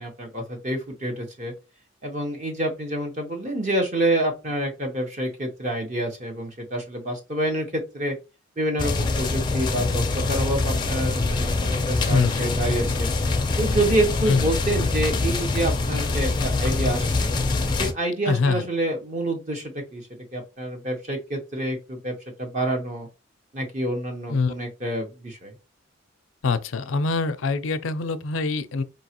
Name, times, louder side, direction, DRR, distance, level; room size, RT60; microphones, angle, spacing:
voice 1, 0.0-1.5 2.0-8.2 8.6-13.1 13.6-17.3 17.8-20.0 20.3-23.1 23.5-25.5, right 1 dB, 35° right, 0.8 m, -27 dB
sound 1, 8.8-17.9, left 3 dB, 20° left, 0.4 m, -24 dB
voice 2, 12.1-12.5 14.3-14.6 18.3-18.7 24.3-24.5 26.4-28.8, left 4 dB, 75° left, 0.5 m, -24 dB
4.6 x 2.8 x 2.9 m
head